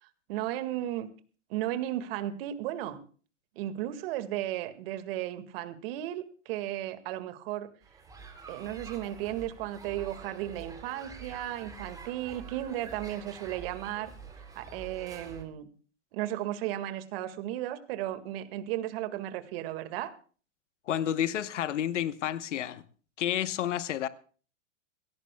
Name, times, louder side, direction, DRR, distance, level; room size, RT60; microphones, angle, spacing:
voice 1, 0.3-1.1 1.5-3.0 3.6-7.7 8.5-14.1 14.6-15.7 16.1-20.1, right 13 dB, 50° right, 1.9 m, -35 dB
sound 1, 7.8-15.4, right 5 dB, 10° right, 3.0 m, -47 dB
voice 2, 20.9-22.8 23.2-24.1, left 11 dB, 80° left, 1.1 m, -30 dB
22.5 x 17.0 x 2.3 m
hypercardioid pair, 130°, 36 cm